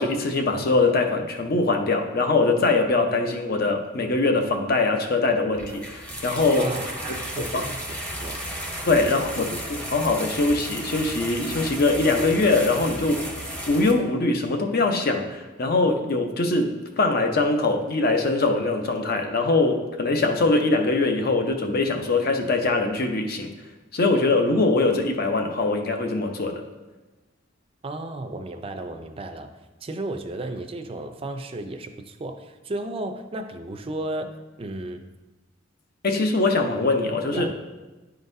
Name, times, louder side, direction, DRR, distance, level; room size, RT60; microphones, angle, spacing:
voice 1, 0.0-6.7 7.5-7.6 8.9-13.3 13.7-23.5 23.9-26.6 36.0-37.5, left 3 dB, 50° left, 4 dB, 0.7 m, -22 dB
sound 1, 5.5-13.9, equal, 5° left, 0.8 m, -34 dB
voice 2, 6.6-7.8 8.2-8.4 9.0-9.2 27.8-29.5 29.8-34.3 34.6-35.0 37.2-37.5, right 2 dB, 30° right, 7 dB, 0.4 m, -33 dB
10.5 x 3.9 x 2.6 m, 1.1 s
head